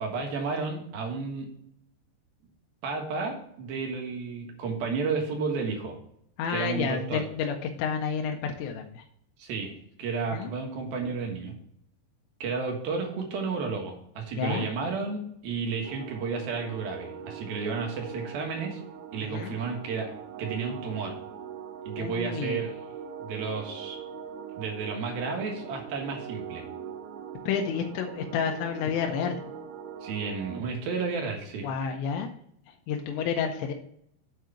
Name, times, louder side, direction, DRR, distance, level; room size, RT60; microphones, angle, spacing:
voice 1, 0.0-1.5 2.8-5.9 6.5-7.2 9.4-9.7 10.0-11.5 12.4-18.8 19.1-20.1 20.4-21.1 21.9-22.7 23.2-24.0 24.6-26.6 30.0-31.7, right 4 dB, 65° right, 2 dB, 3.0 m, -32 dB
voice 2, 6.4-9.0 10.3-10.5 14.4-14.7 19.2-19.6 22.0-22.6 27.5-29.4 31.6-32.3 32.7-33.7, left 6 dB, 85° left, 2 dB, 2.9 m, -30 dB
sound 1, 15.8-30.6, right 7 dB, 85° right, 2.3 m, -41 dB
7.7 x 4.7 x 7.0 m, 0.70 s
omnidirectional pair, 5.2 m